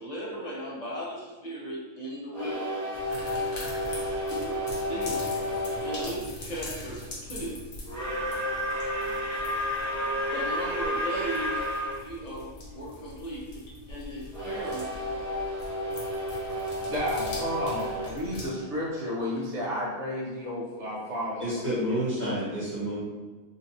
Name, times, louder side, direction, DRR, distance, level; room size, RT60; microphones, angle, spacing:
voice 1, 0.0-3.2 4.8-5.3 5.8-7.6 10.3-15.3, equal, 35° left, -6 dB, 0.7 m, -37 dB
sound 1, 2.3-6.2 7.8-12.0 14.3-19.2, equal, 30° right, 0.3 m, -31 dB
sound 2, 2.9-18.5, left 1 dB, 70° left, 1.3 m, -42 dB
voice 2, 16.9-21.6, equal, 55° right, -5 dB, 1.3 m, -32 dB
voice 3, 21.4-23.0, equal, 10° right, -11 dB, 1.4 m, -29 dB
4.0 x 2.5 x 2.6 m, 1.3 s
omnidirectional pair, 1.5 m